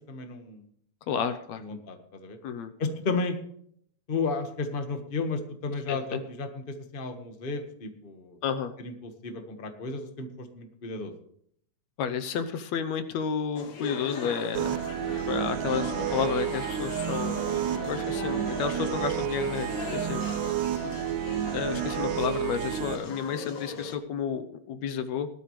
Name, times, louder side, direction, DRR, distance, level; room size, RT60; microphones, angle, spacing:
voice 1, 0.1-0.6 1.6-2.4 2.8-3.4 4.1-8.4 8.8-11.1 15.0-15.1 20.4-20.5, left 3 dB, 35° left, 5 dB, 0.8 m, -33 dB
voice 2, 1.1-1.6 2.4-2.7 5.9-6.2 8.4-8.7 12.0-14.8 15.3-17.4 17.8-20.3 20.8-20.9 21.5-25.3, left 7 dB, 70° left, 9 dB, 2.0 m, -31 dB
sound 1, 13.6-24.0, left 4 dB, 55° left, 2.2 m, -39 dB
sound 2, 14.5-23.0, right 10 dB, 90° right, 2.2 m, -30 dB
19.0 x 12.5 x 3.3 m, 0.66 s
omnidirectional pair, 3.5 m